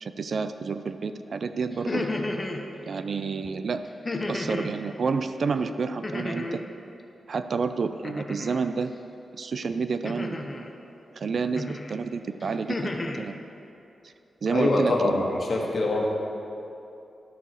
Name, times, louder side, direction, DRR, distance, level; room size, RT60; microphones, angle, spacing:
voice 1, 0.0-2.0 2.8-3.8 4.3-6.6 7.3-8.9 9.3-10.4 11.1-13.4 14.4-15.3, right 5 dB, 50° right, 10 dB, 0.4 m, -29 dB
sound 1, 1.7-2.6 4.0-4.7 6.0-6.7 8.0-8.6 10.0-10.7 11.5-11.9 12.4-13.2, left 2 dB, 25° left, 0.7 m, -32 dB
voice 2, 14.5-16.1, left 2 dB, 50° left, -1 dB, 1.5 m, -24 dB
13.0 x 4.6 x 6.8 m, 2.8 s
wide cardioid pair, 150°, 0 cm